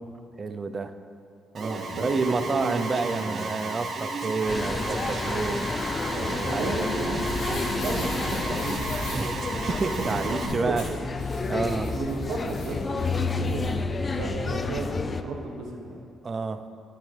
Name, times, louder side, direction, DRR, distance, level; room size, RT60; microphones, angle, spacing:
voice 1, 0.4-1.0 1.5-5.7 6.4-6.7 7.2-7.3 9.1-10.9 11.5-12.0 16.2-16.6, right 4 dB, 35° right, 11 dB, 0.4 m, -29 dB
Alarm, 1.6-10.5, right 3 dB, 50° right, 1.1 m, -33 dB
voice 2, 1.9-2.8 6.3-8.7 9.8-10.7 11.5-16.0, right 2 dB, 75° right, 1 dB, 1.2 m, -34 dB
sound 1, 4.5-15.2, left 3 dB, 30° left, 0.4 m, -30 dB
sound 2, 6.8-13.7, left 2 dB, 85° left, 2.2 m, -40 dB
12.5 x 7.3 x 3.3 m, 2.5 s
cardioid pair, 90°, 0 cm